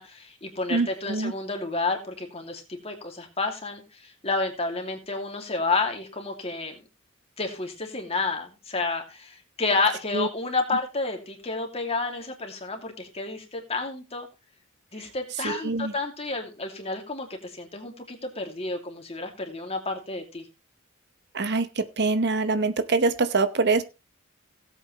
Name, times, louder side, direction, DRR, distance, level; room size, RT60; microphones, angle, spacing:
voice 1, 0.0-6.8 7.4-14.3 14.9-20.4, left 3 dB, 30° left, 3 dB, 2.6 m, -30 dB
voice 2, 0.7-1.3 10.1-10.3 15.4-15.9 21.3-23.8, right 3 dB, 55° right, 11 dB, 1.0 m, -24 dB
17.5 x 8.0 x 3.2 m, 0.27 s
head